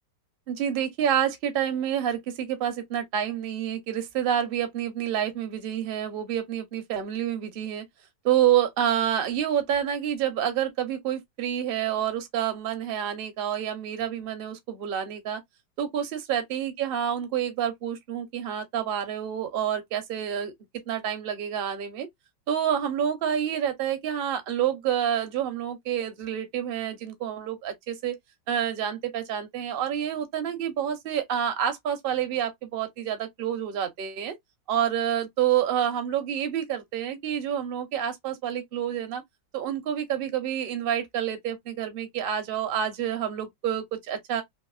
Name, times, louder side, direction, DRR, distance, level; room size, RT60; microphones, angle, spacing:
voice 1, 0.5-7.8 8.2-15.4 15.8-20.5 20.9-22.1 22.5-28.2 28.5-34.3 34.7-39.2 39.5-44.4, right 9 dB, 65° right, 0.5 m, -28 dB
3.4 x 2.7 x 2.3 m
omnidirectional pair, 2.1 m